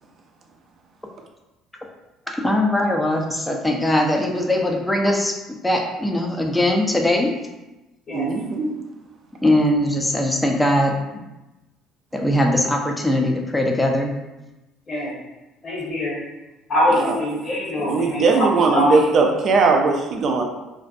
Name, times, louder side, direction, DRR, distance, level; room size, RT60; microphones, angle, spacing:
voice 1, 2.3-7.3 9.4-11.2 12.1-14.1, left 1 dB, 10° left, 1 dB, 0.5 m, -21 dB
voice 2, 8.1-8.8 16.9-17.2 17.8-20.4, right 4 dB, 50° right, 2 dB, 0.4 m, -19 dB
voice 3, 15.6-16.2 16.7-18.9, left 1 dB, 40° left, -8 dB, 1.0 m, -23 dB
2.5 x 2.1 x 2.4 m, 1.0 s
hypercardioid pair, 65°, 0 cm